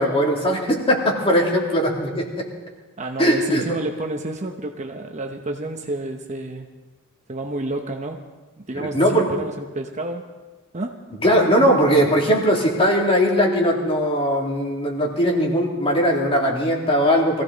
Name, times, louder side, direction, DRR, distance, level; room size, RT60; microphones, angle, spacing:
voice 1, 0.0-2.4 3.2-3.8 8.7-9.3 11.2-17.4, equal, 25° left, -1 dB, 2.7 m, -19 dB
voice 2, 3.0-6.7 7.3-8.3 8.6-10.2 10.7-11.1, right 2 dB, 30° right, 4 dB, 0.9 m, -30 dB
23.0 x 15.5 x 4.1 m, 1.3 s
head